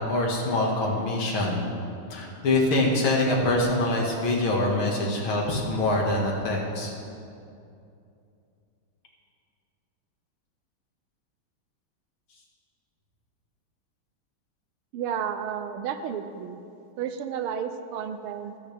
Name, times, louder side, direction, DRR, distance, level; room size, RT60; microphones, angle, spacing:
voice 1, 0.1-1.7 2.1-6.9, left 2 dB, 75° left, -1 dB, 2.6 m, -24 dB
voice 2, 14.9-16.6 17.0-18.7, right 8 dB, 85° right, 9 dB, 1.6 m, -32 dB
26.5 x 9.2 x 3.4 m, 2.6 s
omnidirectional pair, 2.3 m